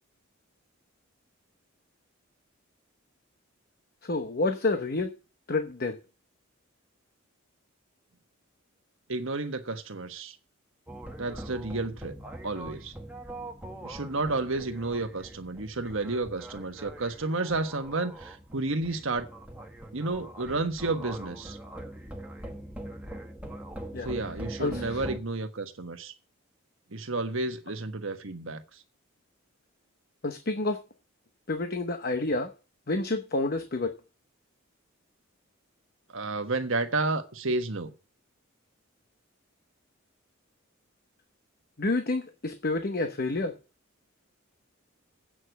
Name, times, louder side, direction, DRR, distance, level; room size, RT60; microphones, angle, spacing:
voice 1, 4.0-5.1 5.5-6.0 23.9-24.1 24.6-25.0 30.2-30.8 31.5-32.5 32.9-34.0 41.8-43.6, left 2 dB, 45° left, 0.9 m, -29 dB
voice 2, 9.1-10.4 11.2-12.1 12.4-12.9 13.8-19.3 19.9-21.6 24.0-26.1 26.9-28.6 36.1-37.9, right 3 dB, 65° right, 1.4 m, -31 dB
sound 1, 10.9-25.2, right 1 dB, 5° right, 1.4 m, -42 dB
8.7 x 6.3 x 8.0 m
head